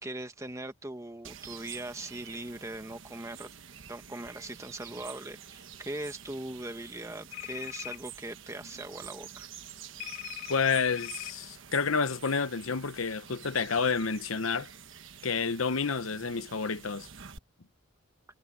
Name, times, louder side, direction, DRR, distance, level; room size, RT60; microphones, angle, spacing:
voice 1, 0.0-3.5 3.9-9.5, right 1 dB, 15° right, 1.6 m, -40 dB
sound 1, 1.2-17.4, right 8 dB, 60° right, 1.3 m, -48 dB
sound 2, 7.3-8.0 10.0-11.3, left 16 dB, 85° left, 2.6 m, -40 dB
voice 2, 10.5-14.7 15.2-17.1, left 5 dB, 70° left, 0.9 m, -29 dB
head